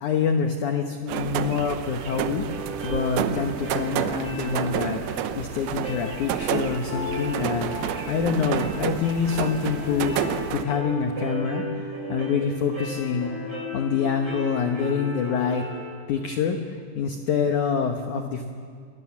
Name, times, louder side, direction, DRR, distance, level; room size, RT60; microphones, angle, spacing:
voice 1, 0.0-2.5 2.8-5.0 5.4-7.7 8.1-10.2 10.5-13.3 13.7-15.6 16.1-18.4, left 6 dB, 80° left, 5 dB, 1.7 m, -26 dB
sound 1, 1.1-10.6, right 10 dB, 75° right, 2.3 m, -30 dB
sound 2, 2.0-15.8, equal, 20° right, 7.5 m, -35 dB
25.5 x 21.0 x 7.2 m, 2.1 s
omnidirectional pair, 5.2 m